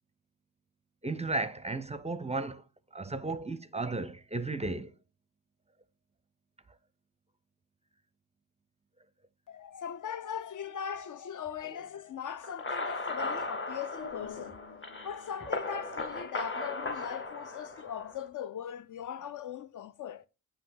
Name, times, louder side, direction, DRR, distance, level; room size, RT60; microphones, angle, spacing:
voice 1, 1.0-2.6 2.9-4.9 13.2-13.3, right 3 dB, 15° right, 0.5 m, -34 dB
voice 2, 9.5-14.6 15.0-20.3, left 8 dB, 55° left, 0.4 m, -40 dB
sound 1, 12.4-18.2, left 3 dB, 30° left, 1.0 m, -37 dB
7.6 x 2.9 x 5.6 m
cardioid pair, 55°, 39 cm